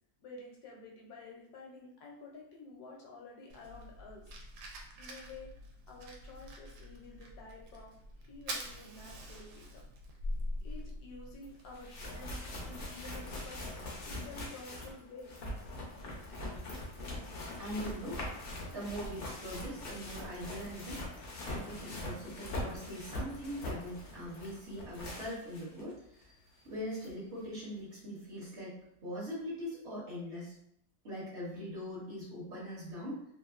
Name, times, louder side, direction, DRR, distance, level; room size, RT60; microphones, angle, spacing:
voice 1, 0.2-4.2 5.0-5.5 5.9-7.9 8.3-9.8 10.6-12.4 12.7-13.6 14.0-15.4, left 3 dB, 75° left, -1 dB, 1.1 m, -50 dB
Fire, 3.5-13.2, equal, 90° right, 1.1 m, -45 dB
sound 1, 11.4-11.5 11.7-25.8 26.2-26.3 27.0-27.1, left 1 dB, 60° left, 0.6 m, -42 dB
voice 2, 17.6-21.0 21.4-26.4 26.6-30.5 31.0-33.3, equal, 50° right, -7 dB, 1.0 m, -42 dB
2.8 x 2.3 x 2.4 m, 0.74 s
omnidirectional pair, 1.7 m